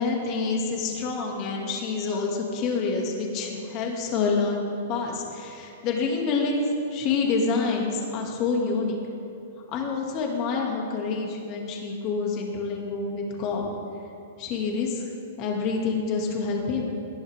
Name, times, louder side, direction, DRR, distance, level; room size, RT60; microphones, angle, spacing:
voice 1, 0.0-9.0 9.7-13.7 14.4-15.1 15.4-16.9, left 4 dB, 35° left, 0 dB, 2.3 m, -27 dB
19.0 x 12.0 x 3.6 m, 2.6 s
hypercardioid pair, 145°, 0 cm